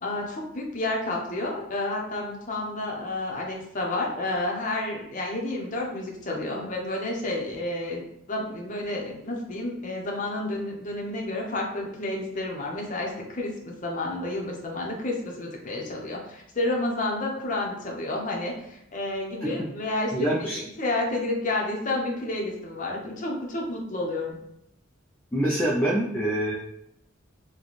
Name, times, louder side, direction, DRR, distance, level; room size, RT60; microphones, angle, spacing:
voice 1, 0.0-20.5 20.8-24.4, left 2 dB, 40° left, -1 dB, 0.7 m, -30 dB
voice 2, 20.1-20.6 25.3-26.6, right 1 dB, 10° left, -4 dB, 0.4 m, -25 dB
4.0 x 2.2 x 3.1 m, 0.78 s
head